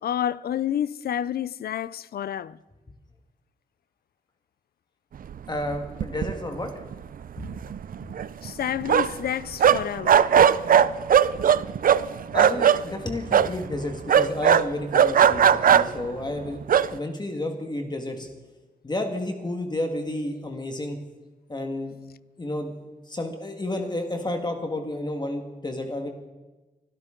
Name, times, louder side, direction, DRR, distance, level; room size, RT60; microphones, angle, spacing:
voice 1, 0.0-2.6 8.4-10.2, left 10 dB, 85° left, 0.4 m, -29 dB
voice 2, 5.5-6.7 8.1-8.2 12.3-18.3 18.8-21.0 21.5-21.9 22.4-22.7 23.1-26.1, left 1 dB, 30° left, 1.7 m, -31 dB
sound 1, 5.7-5.8 6.0-6.7 6.9-7.0 7.4-9.3 9.6-12.8 13.3-13.5 14.1-16.1 16.6-16.9, right 8 dB, 65° right, 0.5 m, -18 dB
24.5 x 12.5 x 3.8 m
wide cardioid pair, 110°, 16 cm